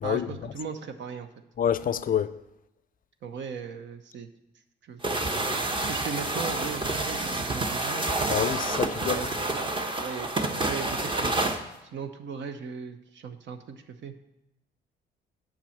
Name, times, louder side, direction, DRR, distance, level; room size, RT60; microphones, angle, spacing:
voice 1, 0.0-1.3 3.2-4.3 4.8-8.1 9.1-14.1, right 6 dB, 65° right, 0.9 m, -38 dB
voice 2, 1.6-2.3 8.3-9.2, left 9 dB, 45° left, 0.5 m, -27 dB
sound 1, 5.0-11.6, right 2 dB, 25° right, 0.9 m, -28 dB
7.3 x 5.3 x 7.2 m
cardioid pair, 90°, 20 cm